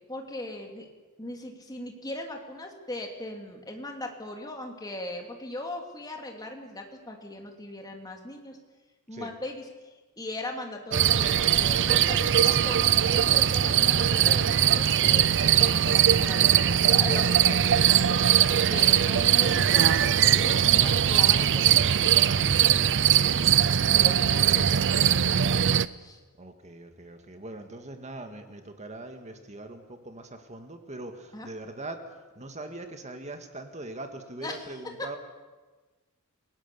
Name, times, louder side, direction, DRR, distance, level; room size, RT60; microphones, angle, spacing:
voice 1, 0.1-0.9 1.2-8.6 9.1-9.6 10.2-18.2 18.7-21.8 23.9-25.4 26.0-26.2 31.3-31.5 34.4-35.0, left 1 dB, 20° left, 2 dB, 2.9 m, -39 dB
sound 1, 10.9-25.9, right 9 dB, 55° right, 0.6 m, -21 dB
voice 2, 26.4-32.0 32.4-35.2, right 2 dB, 30° right, 6 dB, 1.9 m, -41 dB
29.0 x 18.0 x 7.0 m, 1.3 s
head